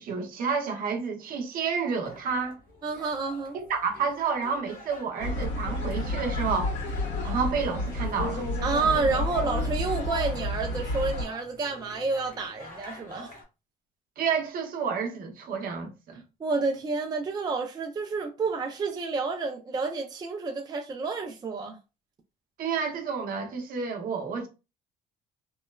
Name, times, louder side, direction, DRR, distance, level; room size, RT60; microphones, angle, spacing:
voice 1, 0.0-2.6 3.5-6.8 7.2-8.5 14.2-15.9 22.6-24.5, right 5 dB, 60° right, 0.7 m, -30 dB
sound 1, 2.0-13.4, left 2 dB, 55° left, 1.2 m, -47 dB
voice 2, 2.8-3.6 8.6-13.3 16.4-21.8, right 4 dB, 25° right, 0.4 m, -29 dB
sound 2, 5.2-11.2, left 1 dB, 80° left, 1.4 m, -30 dB
3.1 x 2.0 x 2.3 m
cardioid pair, 110°, 17 cm